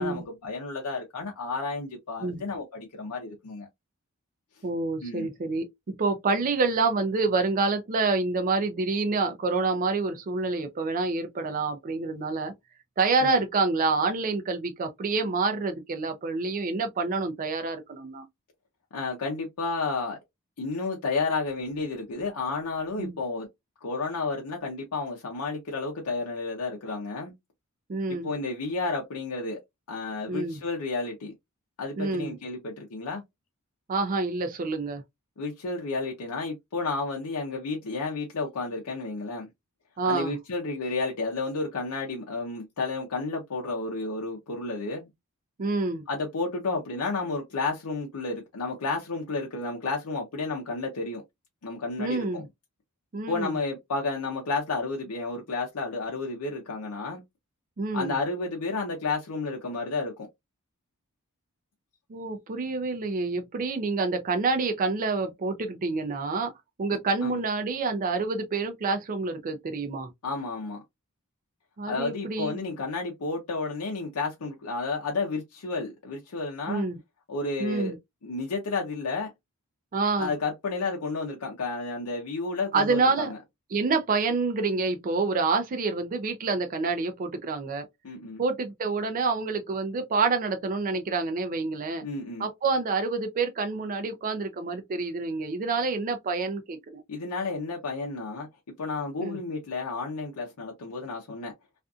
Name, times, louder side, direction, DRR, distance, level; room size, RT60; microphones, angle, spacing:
voice 1, 0.0-3.7 5.0-5.3 13.2-13.4 18.9-20.2 20.6-23.5 23.8-27.3 28.1-29.6 29.9-31.3 31.8-33.2 35.4-39.5 40.1-45.1 46.1-51.2 51.6-52.4 53.3-57.2 57.9-60.3 67.2-67.4 70.2-70.8 71.9-76.9 77.3-77.9 78.2-79.3 80.2-83.4 88.0-88.4 92.0-92.5 97.1-98.5 98.8-101.5, left 3 dB, 80° left, 0.6 m, -31 dB
voice 2, 4.6-12.5 13.0-18.2 23.0-23.2 27.9-28.3 30.3-30.6 32.0-32.4 33.9-35.0 40.0-40.4 45.6-46.0 52.0-52.5 53.1-53.6 57.8-58.2 62.1-66.5 66.8-70.1 71.8-72.6 76.7-77.0 77.6-78.0 79.9-80.3 82.7-83.3 83.7-87.9 88.4-92.0 92.4-97.0 99.2-99.4, right 3 dB, 40° right, 0.4 m, -27 dB
2.5 x 2.4 x 2.3 m
head